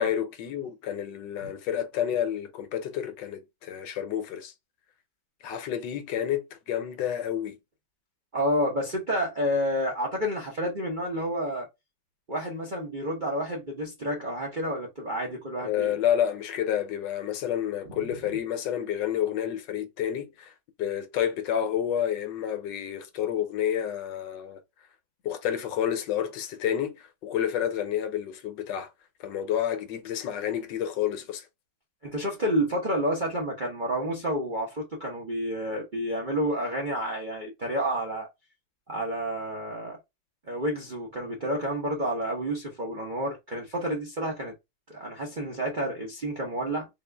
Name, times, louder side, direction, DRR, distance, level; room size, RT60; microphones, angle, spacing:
voice 1, 0.0-4.5 5.4-7.6 15.6-24.6 25.2-28.9 29.2-31.5, left 10 dB, 75° left, 1.2 m, -29 dB
voice 2, 8.3-11.7 12.3-16.0 32.0-38.3 38.9-40.0 40.5-44.5 44.9-46.9, equal, 40° right, 0.6 m, -30 dB
3.8 x 2.4 x 3.3 m
omnidirectional pair, 2.1 m